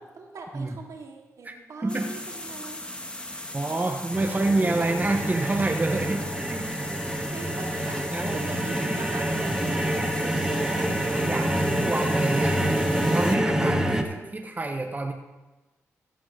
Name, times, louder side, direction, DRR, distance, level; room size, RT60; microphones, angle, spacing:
voice 1, 0.0-2.8 3.3-3.4 4.3-4.4 7.3-8.0 8.3-11.2, right 4 dB, 70° right, 0 dB, 2.5 m, -41 dB
voice 2, 1.8-2.1 3.5-6.8 8.1-8.4 11.1-12.6 13.1-15.1, right 2 dB, 30° right, 3 dB, 1.2 m, -28 dB
sound 1, 1.9-13.3, left 1 dB, 15° left, 1.7 m, -38 dB
sound 2, 4.1-14.0, right 1 dB, 10° right, 2.0 m, -27 dB
14.5 x 6.0 x 6.5 m, 1.1 s
supercardioid pair, 45°, 6 cm